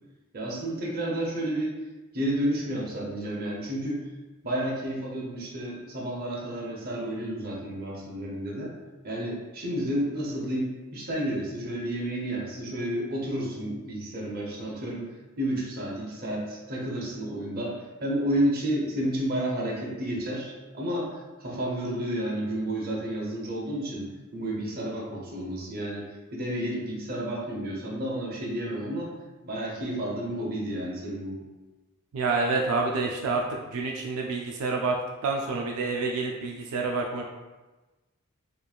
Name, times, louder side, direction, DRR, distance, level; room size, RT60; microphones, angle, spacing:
voice 1, 0.3-1.7 2.1-4.1 4.4-8.7 9.0-15.1 15.4-24.0 24.3-26.0 26.3-29.1 29.4-31.4, right 1 dB, 45° right, -4 dB, 0.6 m, -31 dB
voice 2, 32.1-33.4 33.7-34.9 35.2-37.2, right 3 dB, 85° right, 0 dB, 0.3 m, -28 dB
3.0 x 2.4 x 2.3 m, 1.2 s
head